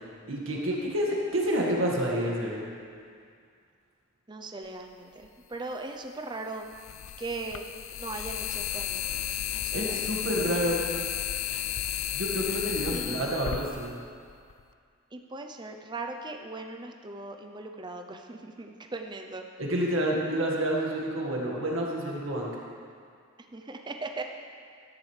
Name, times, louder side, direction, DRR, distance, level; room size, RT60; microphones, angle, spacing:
voice 1, 0.3-2.7 9.7-10.8 12.1-14.0 19.7-22.5, equal, 70° right, -3 dB, 1.8 m, -28 dB
voice 2, 4.3-6.7 7.2-7.7 8.0-9.0 9.5-10.2 12.9-13.3 15.1-19.4 23.5-24.2, right 3 dB, 20° right, 4 dB, 0.6 m, -39 dB
sound 1, 5.2-5.3 6.7-14.6, left 10 dB, 75° left, 0.4 m, -33 dB
13.0 x 10.0 x 3.3 m, 2.2 s
head